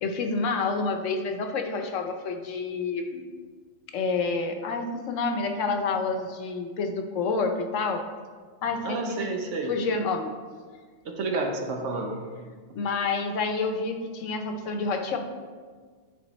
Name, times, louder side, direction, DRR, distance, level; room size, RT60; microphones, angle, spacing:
voice 1, 0.0-3.2 3.9-8.0 8.6-9.2 9.7-10.3 12.8-15.2, left 4 dB, 80° left, 5 dB, 1.1 m, -28 dB
voice 2, 8.8-9.7 11.0-12.2, right 3 dB, 75° right, 3 dB, 1.2 m, -30 dB
9.4 x 3.5 x 4.2 m, 1.5 s
omnidirectional pair, 1.3 m